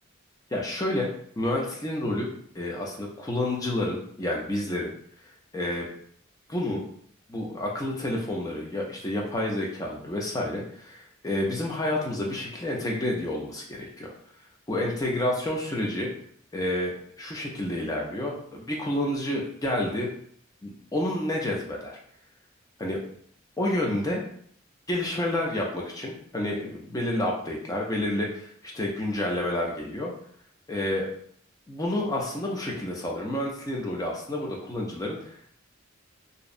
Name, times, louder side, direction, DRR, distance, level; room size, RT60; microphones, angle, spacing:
voice 1, 0.5-4.9 5.5-5.9 6.5-6.8 7.3-14.1 14.7-16.1 16.5-20.1 20.6-22.0 22.8-23.0 23.6-24.2 24.9-30.1 30.7-31.1 31.7-35.2, left 1 dB, 15° left, -1 dB, 0.4 m, -29 dB
2.6 x 2.0 x 2.4 m, 0.63 s
head